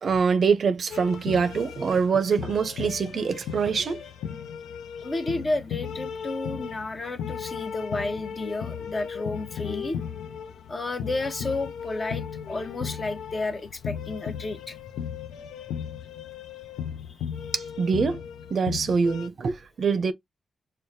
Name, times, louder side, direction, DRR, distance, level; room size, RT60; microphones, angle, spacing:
voice 1, 0.0-4.0 17.5-18.2 18.5-20.1, right 5 dB, 60° right, 0.5 m, -24 dB
sound 1, 0.9-19.3, left 7 dB, 90° left, 0.4 m, -36 dB
voice 2, 5.0-10.0 10.7-14.8 17.0-17.5, left 2 dB, 40° left, 0.8 m, -32 dB
5.5 x 2.1 x 2.6 m
cardioid pair, 55°, 0 cm